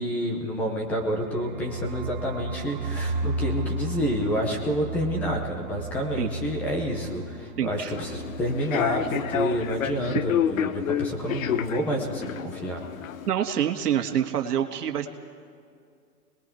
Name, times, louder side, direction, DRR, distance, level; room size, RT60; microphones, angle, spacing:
voice 1, 0.0-12.8, equal, 5° left, 1 dB, 0.5 m, -29 dB
sound 1, 0.9-10.5 10.7-10.9 11.1-11.6, right 2 dB, 30° right, 1.0 m, -35 dB
voice 2, 7.6-7.9 13.3-15.1, right 10 dB, 70° right, 4 dB, 1.8 m, -26 dB
Human voice / Subway metro underground, 7.8-13.3, left 9 dB, 55° left, 0.9 m, -29 dB
30.0 x 20.5 x 4.5 m, 2.3 s
hypercardioid pair, 155°, 48 cm